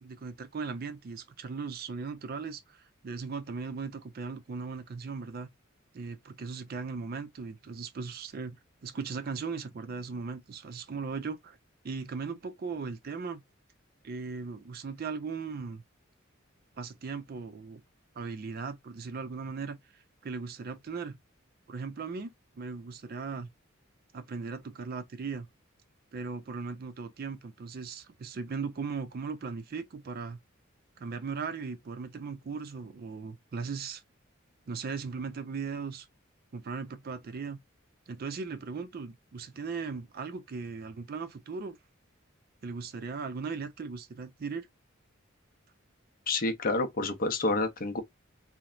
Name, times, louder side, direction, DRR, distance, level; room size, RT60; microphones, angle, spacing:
voice 1, 0.0-5.5 5.9-11.6 11.8-13.4 14.0-15.8 16.8-17.8 18.2-19.8 20.2-21.2 21.7-23.5 24.1-25.5 26.1-30.4 31.0-34.0 34.7-36.1 36.5-37.6 38.1-41.8 42.6-44.7, right 5 dB, 45° right, 0.4 m, -38 dB
voice 2, 46.3-48.0, left 2 dB, 45° left, 0.6 m, -28 dB
2.9 x 2.0 x 2.4 m
head